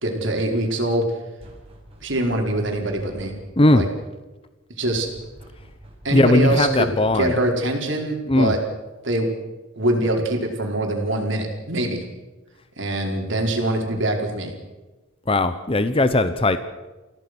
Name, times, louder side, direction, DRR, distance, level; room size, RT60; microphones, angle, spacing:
voice 1, 0.0-1.0 2.0-3.3 3.7-3.9 4.8-5.1 6.0-6.9 7.1-8.6 9.0-9.3 9.8-12.0 12.8-14.5, right 1 dB, 65° right, 2 dB, 4.6 m, -23 dB
sound 1, 1.4-3.6 4.9-7.6, equal, 30° right, 5.4 m, -46 dB
voice 2, 3.6-3.9 6.1-7.3 8.3-8.6 15.3-16.6, left 2 dB, 25° left, 11 dB, 0.9 m, -18 dB
30.0 x 17.0 x 6.2 m, 1.2 s
head